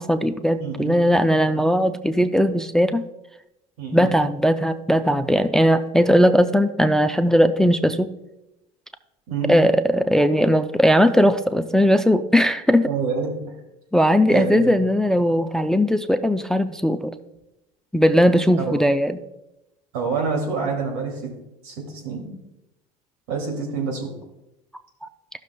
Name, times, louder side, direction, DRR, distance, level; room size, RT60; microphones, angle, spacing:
voice 1, 0.0-3.0 3.9-8.1 9.5-12.9 13.9-17.1 17.9-19.2, equal, 5° left, 10 dB, 0.4 m, -18 dB
voice 2, 0.6-1.0 3.8-4.1 9.3-9.5 12.8-13.3 14.3-14.8 18.6-18.8 19.9-21.3 21.6-22.3 23.3-24.1, right 5 dB, 90° right, 1 dB, 2.5 m, -27 dB
13.5 x 6.3 x 2.2 m, 0.90 s
supercardioid pair, 105°, 19 cm